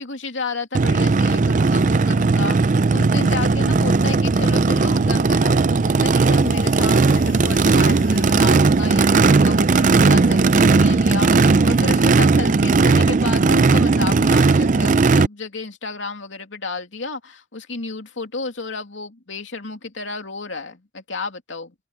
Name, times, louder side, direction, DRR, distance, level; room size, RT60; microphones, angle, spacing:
voice 1, 0.0-21.7, left 3 dB, 80° left, 2.8 m, -32 dB
Race car auto racing / Idling / Accelerating revving vroom, 0.7-15.3, right 3 dB, 40° right, 0.5 m, -16 dB
sound 1, 3.2-14.9, equal, 45° left, 5.1 m, -38 dB
head